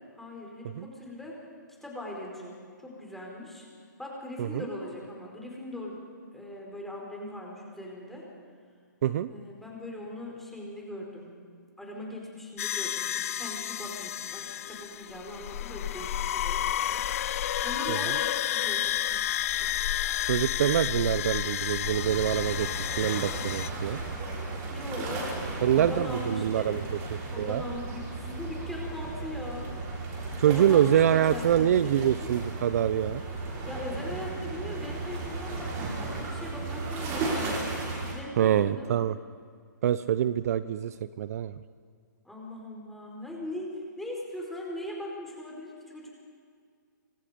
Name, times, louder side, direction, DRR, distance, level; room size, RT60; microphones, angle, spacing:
voice 1, 0.1-1.4 1.8-2.6 2.8-3.7 4.0-6.0 6.3-8.3 9.2-11.3 11.8-17.1 17.6-19.7 24.7-25.3 25.6-26.9 27.3-29.7 30.4-32.1 33.6-37.7 38.1-38.9 42.2-46.1, left 1 dB, ahead, -2 dB, 5.0 m, -40 dB
sound 1, 12.6-23.7, left 12 dB, 45° left, 0.6 m, -31 dB
voice 2, 20.3-24.0 25.6-26.8 27.4-27.6 30.4-33.2 38.4-39.2 39.8-41.5, right 10 dB, 50° right, 14 dB, 0.7 m, -25 dB
sound 2, 21.8-38.1, right 3 dB, 25° right, 6.8 m, -35 dB
25.5 x 25.5 x 5.3 m, 2.1 s
hypercardioid pair, 150°, 11 cm